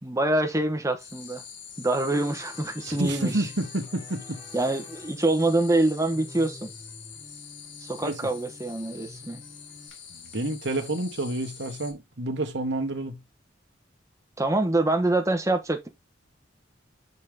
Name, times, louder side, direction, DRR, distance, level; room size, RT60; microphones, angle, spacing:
voice 1, 0.0-1.4 1.8-3.5 4.5-6.7 7.8-9.4 14.4-15.9, right 2 dB, 15° right, 1.0 m, -25 dB
sound 1, 1.0-11.9, left 7 dB, 65° left, 1.8 m, -45 dB
sound 2, 2.1-9.9, left 2 dB, 20° left, 3.7 m, -49 dB
voice 2, 2.9-4.4 8.0-8.2 10.3-13.2, right 2 dB, 60° right, 1.3 m, -29 dB
6.4 x 5.5 x 3.4 m
head